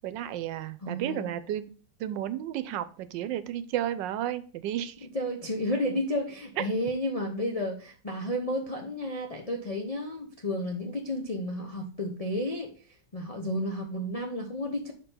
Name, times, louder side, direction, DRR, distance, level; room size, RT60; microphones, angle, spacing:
voice 1, 0.0-1.7 2.0-5.1 6.6-6.7, right 11 dB, 90° right, 14 dB, 1.3 m, -32 dB
voice 2, 0.8-1.3 5.1-12.9 13.1-14.9, left 1 dB, 55° left, 1 dB, 0.4 m, -32 dB
5.1 x 4.5 x 5.6 m, 0.39 s
omnidirectional pair, 1.9 m